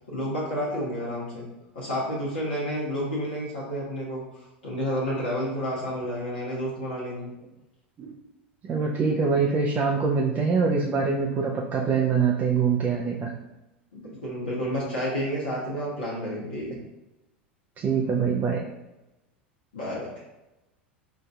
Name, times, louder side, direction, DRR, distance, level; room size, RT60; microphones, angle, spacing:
voice 1, 0.1-1.5 1.7-7.3 13.9-16.8 19.7-20.1, equal, 65° left, -6 dB, 1.0 m, -30 dB
voice 2, 8.6-13.3 17.8-18.6, right 5 dB, 30° right, -1 dB, 0.5 m, -24 dB
5.7 x 2.6 x 2.3 m, 0.98 s
figure-of-eight pair, 80°, 6 cm